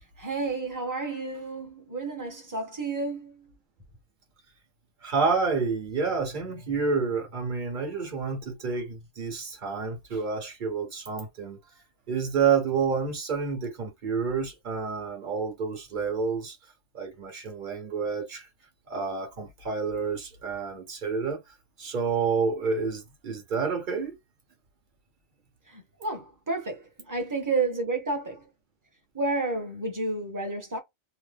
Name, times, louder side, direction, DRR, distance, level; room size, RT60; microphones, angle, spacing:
voice 1, 0.0-3.5 25.7-28.5 29.1-30.8, right 3 dB, 15° right, 0.9 m, -31 dB
voice 2, 5.0-11.6 12.1-16.6 16.9-18.5 18.9-21.4 21.8-24.1, right 5 dB, 45° right, 1.1 m, -29 dB
3.0 x 2.0 x 3.3 m
omnidirectional pair, 1.3 m